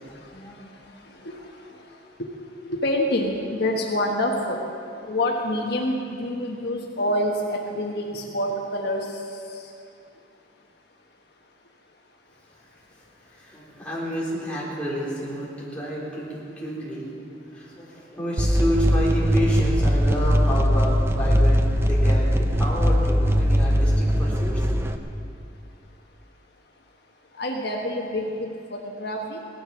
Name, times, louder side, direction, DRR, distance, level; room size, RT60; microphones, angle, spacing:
voice 1, 2.7-4.6 5.1-9.1 27.4-29.4, left 1 dB, 60° left, 0 dB, 1.3 m, -26 dB
voice 2, 13.3-17.1 17.5-24.6, equal, 5° left, -7 dB, 3.9 m, -30 dB
sound 1, 18.4-25.0, equal, 15° right, 0.6 m, -20 dB
17.5 x 12.5 x 5.9 m, 2.6 s
head